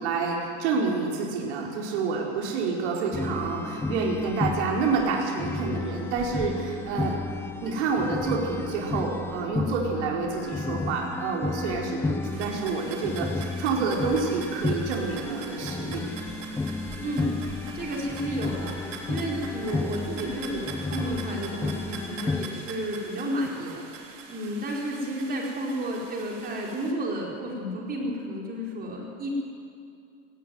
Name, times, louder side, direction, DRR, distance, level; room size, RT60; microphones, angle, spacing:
voice 1, 0.0-7.1 7.6-16.1, right 4 dB, 65° right, -1 dB, 4.6 m, -28 dB
sound 1, 3.1-22.5, left 3 dB, 5° left, 0.6 m, -32 dB
sound 2, 12.3-26.9, right 4 dB, 80° right, 3.4 m, -43 dB
voice 2, 17.0-17.3 17.7-18.8 19.1-29.3, equal, 25° right, -1 dB, 4.8 m, -32 dB
17.5 x 17.5 x 9.5 m, 2.4 s
supercardioid pair, 135°, 37 cm